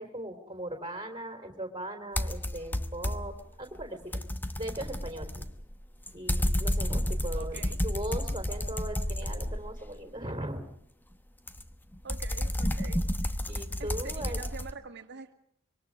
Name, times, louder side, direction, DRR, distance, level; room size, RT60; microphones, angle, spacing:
voice 1, 0.0-4.2 4.5-5.4 6.1-10.6 13.5-14.4, right 1 dB, 20° right, 5 dB, 3.7 m, -39 dB
sound 1, 2.2-3.4 3.8-10.0 11.5-14.7, left 1 dB, 10° left, 0.9 m, -31 dB
voice 2, 7.3-7.8 12.0-13.0 13.8-15.3, right 5 dB, 55° right, 7 dB, 2.0 m, -44 dB
25.5 x 24.0 x 4.9 m, 0.70 s
head